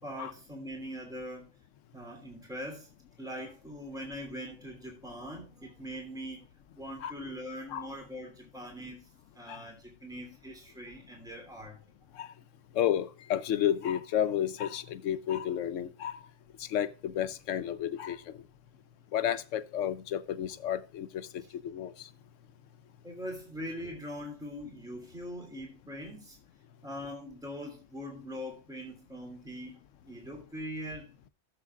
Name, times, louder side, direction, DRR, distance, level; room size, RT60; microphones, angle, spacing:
voice 1, 0.0-1.5 1.9-2.9 3.2-6.5 6.7-11.8 23.0-26.4 26.8-31.1, equal, 5° right, 2.9 m, -42 dB
voice 2, 12.7-16.2 16.6-18.2 19.1-22.1, left 10 dB, 80° left, 1.0 m, -31 dB
16.0 x 7.7 x 2.4 m
omnidirectional pair, 1.3 m